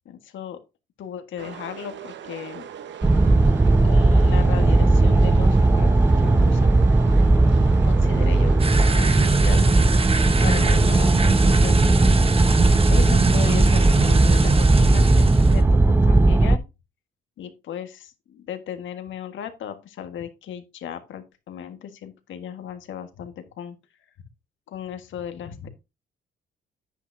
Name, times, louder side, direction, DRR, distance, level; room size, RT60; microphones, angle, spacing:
voice 1, 0.0-0.6 1.0-2.7 3.7-6.8 7.6-11.9 12.9-16.6 17.4-23.7 24.7-25.7, left 9 dB, 75° left, 8 dB, 1.6 m, -36 dB
sound 1, 1.4-11.0, right 9 dB, 65° right, 1.0 m, -39 dB
sound 2, 3.0-16.6, right 2 dB, 10° right, 0.4 m, -17 dB
sound 3, 8.6-15.6, right 4 dB, 30° right, 1.2 m, -26 dB
10.0 x 8.5 x 2.7 m, 0.26 s
cardioid pair, 90°, 20 cm